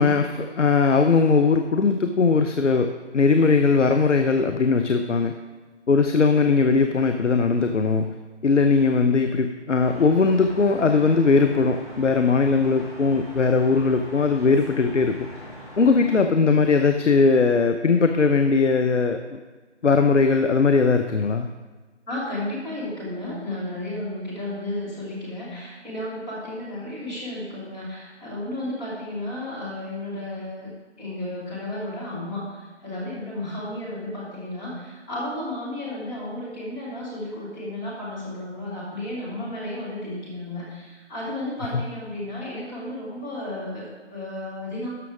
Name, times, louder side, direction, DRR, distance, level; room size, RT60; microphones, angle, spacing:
voice 1, 0.0-5.3 5.9-8.1 8.4-15.2 15.8-19.4 19.8-21.5, left 4 dB, 80° left, 7 dB, 0.8 m, -19 dB
sound 1, 9.8-16.2, equal, 25° left, 2.5 m, -42 dB
voice 2, 22.1-30.7 31.0-44.9, left 1 dB, 5° left, -10 dB, 1.3 m, -33 dB
12.5 x 6.1 x 4.9 m, 1.3 s
figure-of-eight pair, 160°, 36 cm